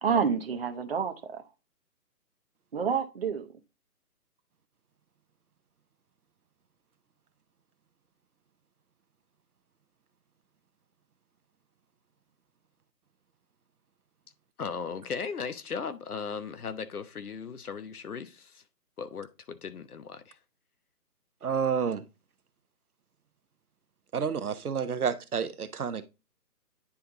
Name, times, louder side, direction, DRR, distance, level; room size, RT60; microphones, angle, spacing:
voice 1, 0.0-1.4 2.7-3.5, right 6 dB, 40° right, 0.8 m, -28 dB
voice 2, 14.6-18.6 19.0-20.4, left 5 dB, 65° left, 1.0 m, -37 dB
voice 3, 21.4-22.0 24.1-26.0, right 6 dB, 65° right, 0.8 m, -29 dB
9.7 x 3.4 x 3.7 m
figure-of-eight pair, 150°, 48 cm